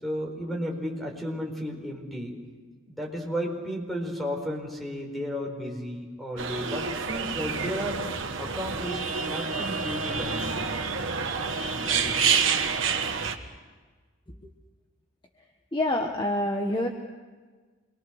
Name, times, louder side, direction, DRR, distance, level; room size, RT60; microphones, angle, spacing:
voice 1, 0.0-2.4 2.9-8.0 8.4-10.6 11.7-12.5, equal, ahead, 0 dB, 4.6 m, -33 dB
sound 1, 6.4-13.4, right 5 dB, 75° right, 1.7 m, -28 dB
voice 2, 15.7-16.9, left 1 dB, 25° left, 2 dB, 1.4 m, -26 dB
27.0 x 22.0 x 6.5 m, 1.4 s
head